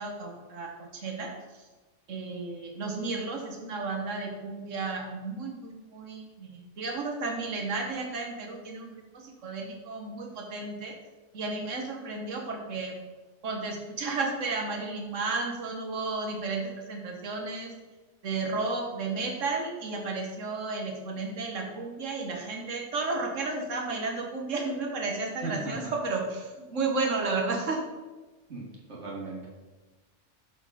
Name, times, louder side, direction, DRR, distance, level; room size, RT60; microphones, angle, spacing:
voice 1, 0.0-1.3 2.1-11.0 11.3-13.0 13.4-17.7 18.2-27.8, right 3 dB, 85° right, 1 dB, 1.5 m, -33 dB
voice 2, 25.4-25.9 28.5-29.5, right 3 dB, 65° right, -3 dB, 2.5 m, -37 dB
13.5 x 4.5 x 5.0 m, 1.2 s
omnidirectional pair, 1.3 m